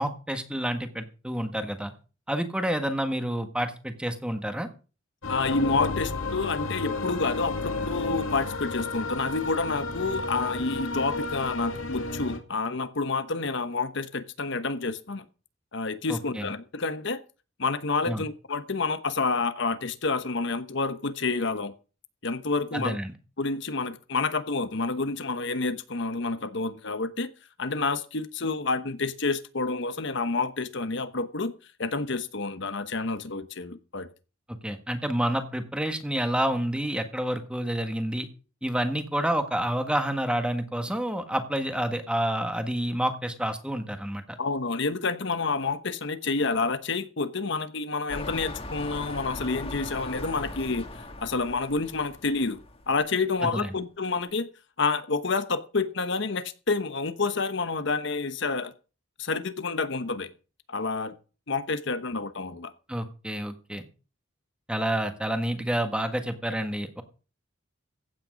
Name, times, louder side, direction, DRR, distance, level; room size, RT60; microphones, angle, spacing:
voice 1, 0.0-1.9 2.3-4.7 16.1-16.5 18.1-18.2 22.7-23.1 34.6-38.3 38.6-44.4 53.4-53.7 62.9-63.8 64.7-67.0, right 1 dB, 5° right, 7 dB, 1.5 m, -29 dB
sound 1, 5.2-12.4, left 3 dB, 90° left, 2.3 m, -32 dB
voice 2, 5.3-15.2 15.7-17.2 17.6-21.7 22.2-23.0 23.4-27.3 27.6-31.5 31.8-34.1 44.4-52.6 52.9-54.5 54.8-58.7 59.2-60.3 60.7-61.1 61.5-62.7, left 3 dB, 60° left, 11 dB, 1.1 m, -29 dB
sound 2, 48.1-53.1 53.7-53.8, left 2 dB, 30° left, 2.0 m, -39 dB
15.5 x 9.0 x 5.2 m, 0.35 s
head